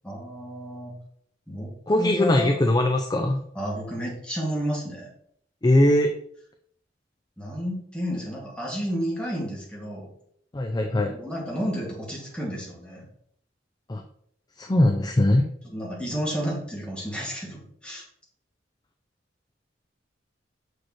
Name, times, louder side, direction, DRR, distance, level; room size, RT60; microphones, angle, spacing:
voice 1, 0.0-0.9 1.5-1.7 2.0-2.5 3.5-5.1 7.4-10.1 11.1-13.1 15.6-18.0, equal, 5° left, -4 dB, 2.1 m, -31 dB
voice 2, 1.9-3.4 5.6-6.1 10.5-11.2 13.9-14.0 14.6-15.5, left 1 dB, 20° left, 4 dB, 0.5 m, -21 dB
6.5 x 6.2 x 3.1 m, 0.67 s
head